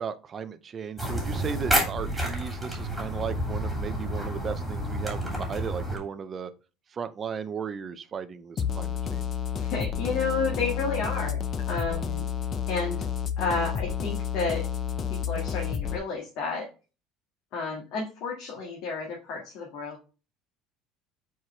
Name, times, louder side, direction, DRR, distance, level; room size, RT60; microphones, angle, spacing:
voice 1, 0.0-6.5 6.9-9.3, right 6 dB, 30° right, 12 dB, 0.5 m, -36 dB
sound 1, 1.0-6.0, right 1 dB, ahead, 2.9 m, -29 dB
sound 2, 8.6-16.0, left 7 dB, 30° left, 0.5 m, -30 dB
voice 2, 9.6-12.3 12.7-13.0 13.4-14.6 15.1-16.7 17.5-20.0, left 4 dB, 60° left, -2 dB, 1.9 m, -31 dB
4.8 x 4.6 x 4.3 m, 0.33 s
cardioid pair, 150°, 0 cm